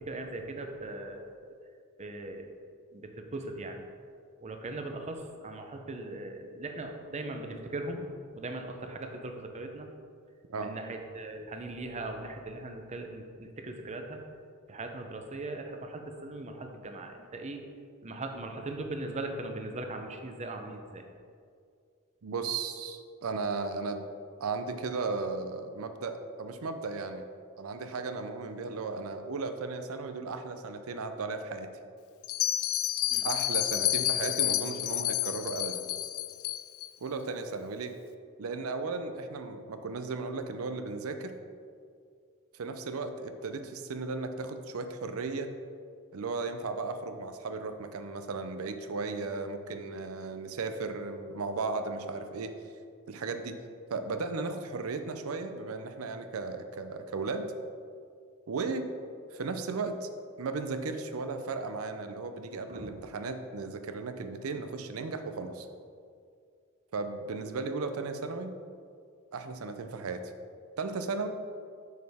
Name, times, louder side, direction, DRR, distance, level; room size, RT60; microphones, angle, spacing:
voice 1, 0.0-1.3 2.0-2.5 2.9-3.9 4.4-8.0 8.3-9.9 10.6-14.2 14.7-17.6 18.0-21.0 33.1-33.3 62.7-62.9, right 2 dB, 30° right, 4 dB, 0.6 m, -39 dB
voice 2, 22.2-24.1 24.4-27.3 27.6-31.8 33.2-35.9 37.0-37.9 38.4-41.3 42.5-45.5 46.1-52.5 53.1-53.6 53.9-57.5 58.5-58.9 59.3-60.1 60.4-65.7 66.9-68.5 69.3-70.3 70.8-71.3, right 4 dB, 80° right, 8 dB, 0.5 m, -35 dB
Bell, 32.2-36.9, left 14 dB, 75° left, 0.4 m, -30 dB
6.6 x 6.4 x 3.5 m, 2.2 s
head